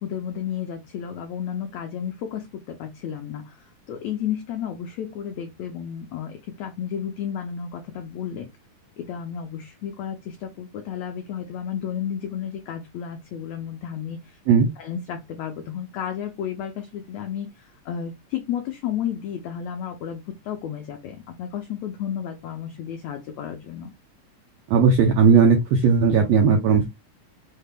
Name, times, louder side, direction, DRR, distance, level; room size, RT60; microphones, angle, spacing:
voice 1, 0.0-8.5 9.0-14.4 14.8-23.9, left 9 dB, 85° left, 5 dB, 1.5 m, -32 dB
voice 2, 24.7-26.9, right 5 dB, 80° right, 3 dB, 1.5 m, -17 dB
5.6 x 2.2 x 3.3 m, 0.21 s
omnidirectional pair, 3.8 m